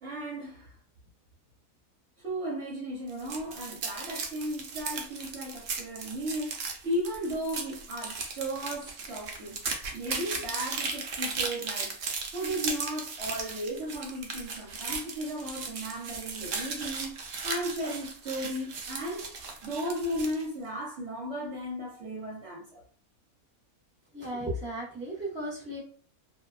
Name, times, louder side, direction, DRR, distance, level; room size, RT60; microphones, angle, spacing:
voice 1, 0.0-0.7 2.2-9.6 9.9-11.9 12.3-17.1 17.4-19.3 19.6-22.8, equal, 55° right, 0.9 m, -35 dB
sound 1, 3.1-20.5, right 4 dB, 75° right, 0.5 m, -37 dB
voice 2, 24.1-25.8, right 1 dB, 10° right, 0.9 m, -35 dB
2.8 x 2.2 x 2.3 m
omnidirectional pair, 1.6 m